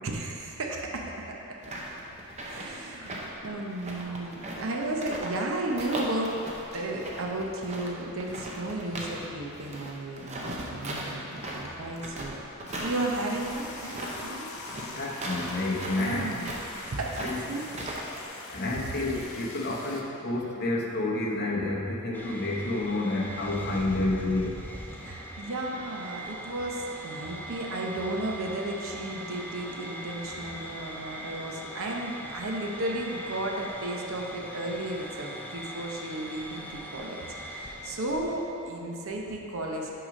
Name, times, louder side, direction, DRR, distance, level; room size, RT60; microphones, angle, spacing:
voice 1, 0.0-1.6 2.4-6.3 6.7-12.4 12.7-14.5 16.0-16.6 16.9-17.6 25.0-37.2 37.5-39.9, right 1 dB, 65° right, 0 dB, 0.8 m, -34 dB
sound 1, 1.6-5.4 5.7-9.3 9.5-18.2, right 1 dB, 30° right, 0.8 m, -38 dB
voice 2, 3.0-3.4 14.9-16.3 17.2-17.4 18.5-24.6 31.1-31.2, left 2 dB, 45° left, -3 dB, 0.9 m, -30 dB
sound 2, 12.7-20.0, left 3 dB, 70° left, 0.7 m, -43 dB
sound 3, 22.1-38.4, equal, 10° left, 0.5 m, -41 dB
6.2 x 4.9 x 5.2 m, 2.9 s
head